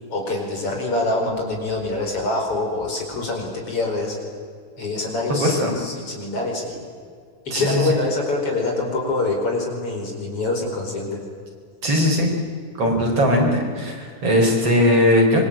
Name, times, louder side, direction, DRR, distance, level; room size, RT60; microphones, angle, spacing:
voice 1, 0.1-4.2 4.8-6.8 7.5-11.2, left 2 dB, 45° left, 1 dB, 5.6 m, -25 dB
voice 2, 5.3-5.7 7.5-7.8 11.8-12.3 12.8-15.4, left 1 dB, 45° right, 1 dB, 5.6 m, -19 dB
26.0 x 23.5 x 8.8 m, 2.1 s
omnidirectional pair, 3.8 m